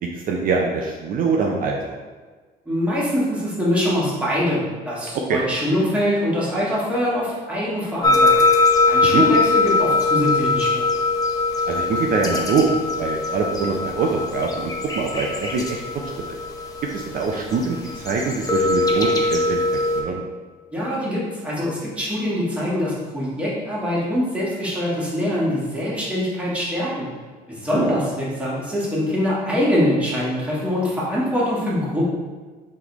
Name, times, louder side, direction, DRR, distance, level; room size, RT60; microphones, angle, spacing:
voice 1, 0.0-1.9 5.3-5.4 9.1-9.2 11.7-16.1 16.9-19.6 19.9-20.2 27.7-27.9, right 4 dB, 55° right, 0 dB, 0.5 m, -24 dB
voice 2, 2.7-8.4 8.9-10.9 20.7-27.1 27.5-32.1, left 1 dB, 5° right, -7 dB, 1.3 m, -23 dB
sound 1, 8.0-20.0, left 3 dB, 20° left, 0.6 m, -21 dB
4.0 x 3.2 x 3.0 m, 1.4 s
cardioid pair, 110°, 17 cm